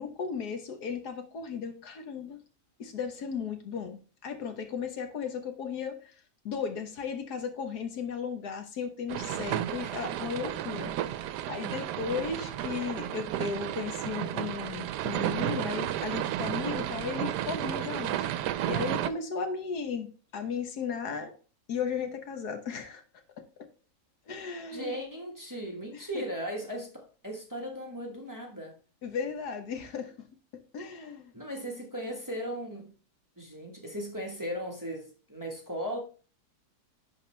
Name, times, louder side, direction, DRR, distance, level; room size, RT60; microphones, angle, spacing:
voice 1, 0.0-2.4 2.8-6.2 6.4-10.9 11.5-21.3 21.7-23.0 23.4-23.7 24.3-25.0 25.9-26.2 29.0-30.3 30.7-31.3, left 6 dB, 70° left, 1.6 m, -35 dB
sound 1, 9.1-19.1, right 12 dB, 80° right, 1.1 m, -32 dB
voice 2, 24.7-28.7 31.3-32.9 33.4-36.0, equal, 10° right, 1.3 m, -37 dB
11.0 x 4.2 x 3.3 m
omnidirectional pair, 1.8 m